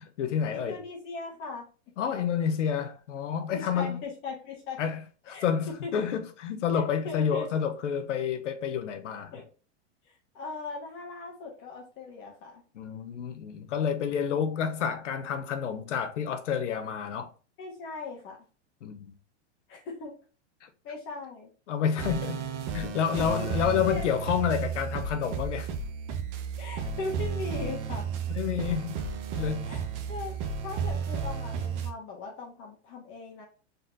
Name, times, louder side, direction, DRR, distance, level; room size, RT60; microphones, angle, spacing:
voice 1, 0.0-0.8 2.0-4.0 4.8-5.0 5.2-9.3 12.7-17.3 18.8-19.1 20.6-20.7 21.7-22.4 22.7-25.7 28.3-29.0 29.4-29.7, left 7 dB, 90° left, 0.9 m, -29 dB
voice 2, 0.5-1.7 3.5-4.8 5.3-5.4 5.8-5.9 6.7-7.5 9.3-9.5 10.0-12.6 17.6-18.4 19.7-20.1 20.8-21.5 23.2-23.3 23.5-23.6 23.9-24.0 26.6-28.1 29.6-30.3 30.6-33.5, left 4 dB, 35° left, 1.4 m, -39 dB
sound 1, 22.0-31.9, right 6 dB, 40° right, 0.8 m, -33 dB
4.0 x 4.0 x 2.7 m
supercardioid pair, 140°, 35 cm